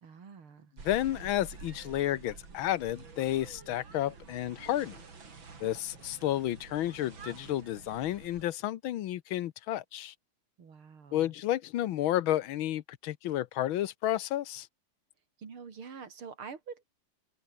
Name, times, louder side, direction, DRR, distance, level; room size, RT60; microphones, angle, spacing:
voice 1, 0.0-0.7 10.6-11.3 15.4-16.8, right 6 dB, 85° right, 3.6 m, -46 dB
voice 2, 0.8-5.0 5.6-10.1 11.1-14.7, left 13 dB, 75° left, 1.6 m, -31 dB
sound 1, 0.8-8.4, right 5 dB, 65° right, 4.0 m, -49 dB
omnidirectional pair, 2.3 m